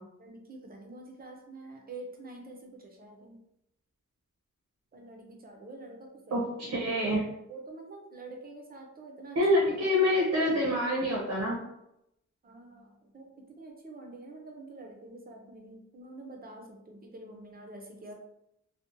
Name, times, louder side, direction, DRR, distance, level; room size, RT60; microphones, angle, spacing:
voice 1, 0.2-3.4 4.9-6.4 7.5-9.4 12.4-13.3 13.6-18.1, right 2 dB, 30° right, 1 dB, 0.4 m, -47 dB
voice 2, 6.3-7.2 9.3-11.6, left 1 dB, 75° right, -4 dB, 0.7 m, -26 dB
2.7 x 2.1 x 2.4 m, 0.83 s
wide cardioid pair, 175°, 30 cm